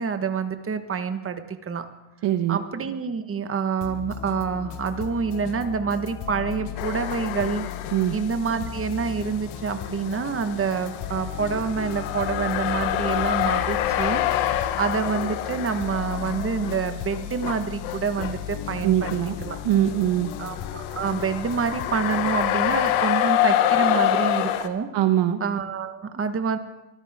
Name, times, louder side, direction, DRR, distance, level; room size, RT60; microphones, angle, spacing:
voice 1, 0.0-1.8 2.5-7.7 8.1-14.2 14.8-19.1 19.4-19.6 20.4-24.9 25.4-26.6, right 5 dB, 30° right, 8 dB, 1.4 m, -27 dB
voice 2, 2.2-2.6 7.9-8.2 18.8-19.3 19.6-20.3 24.9-25.4, right 11 dB, 65° right, 8 dB, 1.2 m, -22 dB
sound 1, 3.8-23.0, left 11 dB, 65° left, 1.2 m, -36 dB
sound 2, 6.8-8.3 8.6-24.7, left 12 dB, 85° left, 1.1 m, -27 dB
23.5 x 14.0 x 3.7 m, 1.0 s
supercardioid pair, 90°, 47 cm